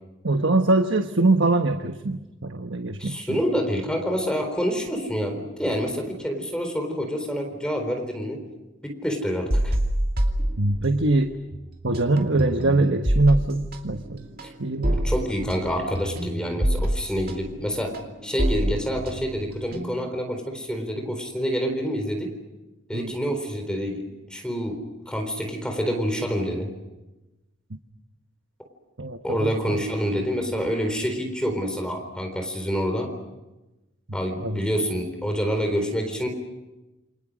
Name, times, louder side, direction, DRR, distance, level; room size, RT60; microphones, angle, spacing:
voice 1, 0.2-3.4 10.6-11.4 11.8-14.3 14.6-15.0 22.9-23.1 27.7-27.8 29.0-29.8 34.4-34.6, right 2 dB, 80° right, 6 dB, 1.3 m, -23 dB
voice 2, 3.0-8.4 8.8-9.7 14.4-14.5 14.9-18.0 18.2-22.3 22.9-26.7 29.2-33.1 34.1-36.3, equal, 5° left, 4 dB, 4.0 m, -27 dB
sound 1, 9.5-11.2 11.5-20.2, right 1 dB, 50° right, 2.7 m, -27 dB
28.5 x 25.5 x 6.4 m, 1.0 s
head